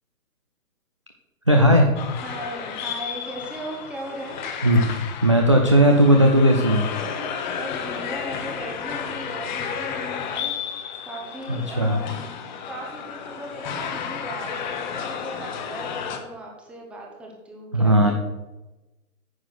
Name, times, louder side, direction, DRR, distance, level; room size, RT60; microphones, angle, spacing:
voice 1, 1.5-1.9 4.6-4.9 5.2-6.9 11.5-12.0 17.7-18.1, equal, 25° right, 3 dB, 0.3 m, -16 dB
sound 1, 2.0-16.2, left 7 dB, 30° left, 1.1 m, -32 dB
voice 2, 2.2-4.5 7.6-10.8 11.0-12.3 12.7-18.1, right 1 dB, 5° right, 0 dB, 0.7 m, -37 dB
9.3 x 5.7 x 6.4 m, 1.1 s
hypercardioid pair, 150°, 43 cm